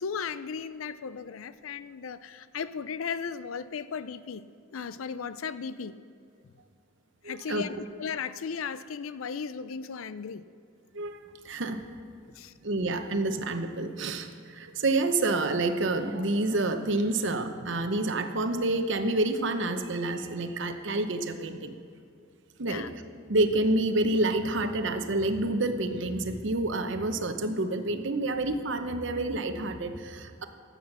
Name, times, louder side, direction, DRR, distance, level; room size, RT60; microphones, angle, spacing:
voice 1, 0.0-4.5 4.7-6.0 7.2-10.4 12.3-12.5 22.6-22.9, left 6 dB, 90° left, 14 dB, 0.5 m, -36 dB
voice 2, 7.2-7.6 10.9-11.2 11.4-11.8 12.6-21.7 22.6-22.9 23.3-30.5, right 2 dB, 65° right, 8 dB, 0.8 m, -28 dB
13.5 x 8.3 x 6.0 m, 2.5 s
head